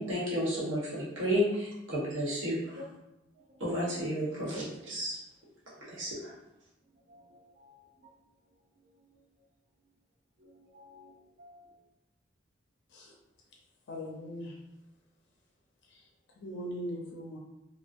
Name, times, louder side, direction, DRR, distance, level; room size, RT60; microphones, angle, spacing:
voice 1, 0.0-2.8 3.6-5.2 5.8-6.3, equal, 90° right, -7 dB, 1.0 m, -32 dB
voice 2, 7.1-7.8 8.0-8.1 10.4-11.6, left 2 dB, 45° right, 0 dB, 0.5 m, -52 dB
voice 3, 13.9-14.6 15.9-16.1 16.4-17.4, equal, 65° left, -2 dB, 0.5 m, -40 dB
2.4 x 2.1 x 2.5 m, 0.93 s
head